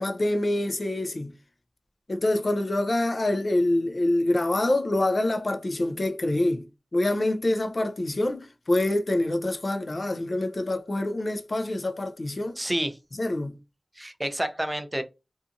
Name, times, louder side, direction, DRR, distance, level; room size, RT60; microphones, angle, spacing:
voice 1, 0.0-1.3 2.1-6.6 6.9-12.6 13.2-13.6, left 1 dB, 55° left, 0.5 m, -26 dB
voice 2, 12.6-13.0 14.0-15.0, right 1 dB, 15° right, 0.5 m, -29 dB
2.7 x 2.4 x 2.5 m
wide cardioid pair, 50°, 0 cm